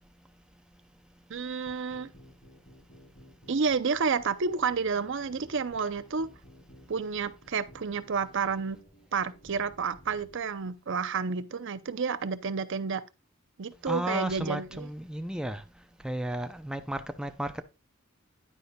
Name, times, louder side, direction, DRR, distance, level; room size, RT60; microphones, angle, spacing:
voice 1, 1.3-2.1 3.5-6.3 6.9-8.8 9.1-13.0 13.6-14.9, right 5 dB, 65° right, 0.6 m, -30 dB
sound 1, 1.7-10.3, equal, 50° left, 3.6 m, -55 dB
voice 2, 13.9-15.6 16.0-17.6, right 1 dB, 5° right, 0.5 m, -33 dB
10.0 x 9.3 x 2.3 m
head